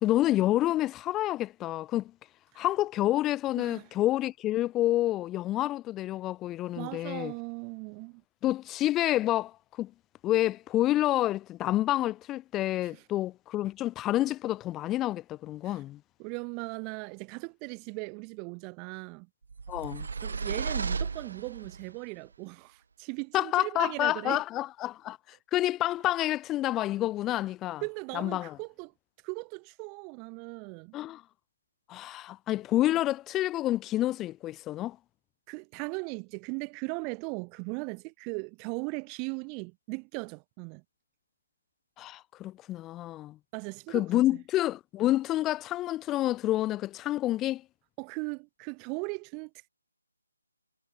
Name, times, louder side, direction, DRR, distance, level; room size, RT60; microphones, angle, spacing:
voice 1, 0.0-2.1 2.6-7.3 8.4-9.9 10.2-16.0 19.7-20.1 23.3-27.8 28.1-28.6 30.9-31.2 31.9-35.0 42.0-43.4 43.9-47.6, left 14 dB, 10° left, 0.6 m, -28 dB
voice 2, 6.8-8.2 12.9-13.0 15.6-15.8 16.2-19.3 20.2-24.4 27.8-28.9 29.2-31.0 35.5-40.8 43.5-44.1 44.3-44.4 48.0-49.7, right 36 dB, 15° right, 1.8 m, -38 dB
sound 1, 19.5-21.9, right 5 dB, 45° right, 1.0 m, -34 dB
figure-of-eight pair, 150°, 0 cm